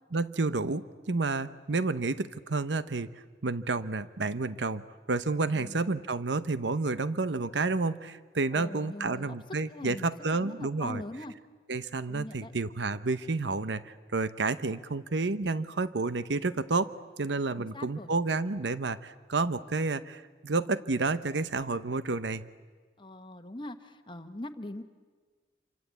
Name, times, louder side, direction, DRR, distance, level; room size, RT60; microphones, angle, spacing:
voice 1, 0.1-3.1 3.4-11.0 11.7-16.9 17.2-22.5, right 3 dB, 85° right, 14 dB, 0.8 m, -30 dB
voice 2, 8.5-9.3 9.7-11.3 12.1-12.5 17.6-18.1 23.0-24.8, left 1 dB, 25° left, 8 dB, 1.2 m, -42 dB
28.0 x 25.0 x 8.2 m, 1.5 s
head